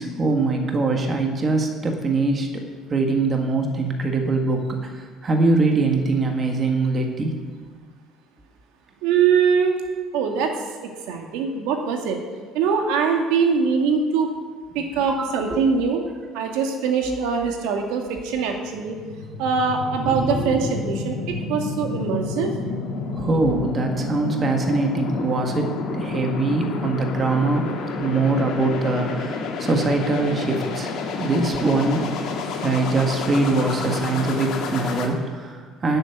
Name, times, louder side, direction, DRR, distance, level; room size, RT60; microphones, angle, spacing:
voice 1, 0.0-2.5 2.9-4.9 5.2-7.4 14.8-15.6 20.0-20.7 22.2-22.3 23.1-30.9 31.2-32.0 32.6-36.0, right 3 dB, 20° right, 3 dB, 1.5 m, -23 dB
voice 2, 9.0-9.8 10.1-10.5 10.8-12.2 12.5-14.3 14.7-16.0 16.3-19.0 19.4-22.5, right 5 dB, 85° right, 3 dB, 2.2 m, -22 dB
sound 1, 18.5-35.1, left 4 dB, 50° left, 2.1 m, -30 dB
13.0 x 8.1 x 9.4 m, 1.5 s
cardioid pair, 175°, 0 cm